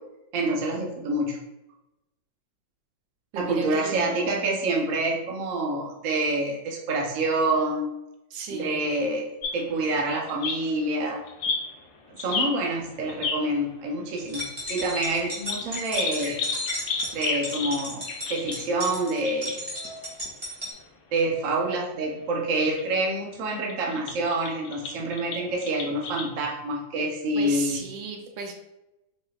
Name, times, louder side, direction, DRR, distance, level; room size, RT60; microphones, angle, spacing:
voice 1, 0.3-1.4 3.4-7.9 8.5-9.2 9.5-11.2 12.2-16.4 17.1-19.6 21.1-27.8, right 2 dB, 55° right, -1 dB, 1.0 m, -27 dB
voice 2, 3.3-4.7 8.3-9.0 27.4-28.6, right 4 dB, 80° right, 3 dB, 1.4 m, -36 dB
sound 1, 9.4-13.5 14.2-20.4 20.6-20.8 21.3-21.4 22.7-22.8 23.5-26.2, left 4 dB, 70° left, 1.3 m, -33 dB
sound 2, 14.2-20.7, left 1 dB, 25° right, 1.1 m, -34 dB
4.5 x 4.2 x 2.4 m, 0.94 s
omnidirectional pair, 2.1 m